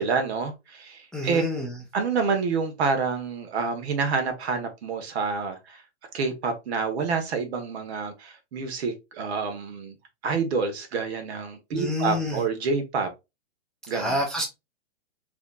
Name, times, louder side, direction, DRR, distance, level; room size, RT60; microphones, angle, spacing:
voice 1, 0.0-1.4 1.9-5.8 6.1-9.9 10.2-13.1 13.9-14.2, right 5 dB, 60° right, 1.4 m, -28 dB
voice 2, 1.1-1.7 11.7-12.4 13.9-14.4, left 1 dB, ahead, 0.5 m, -28 dB
4.8 x 3.0 x 2.4 m
hypercardioid pair, 130°, 36 cm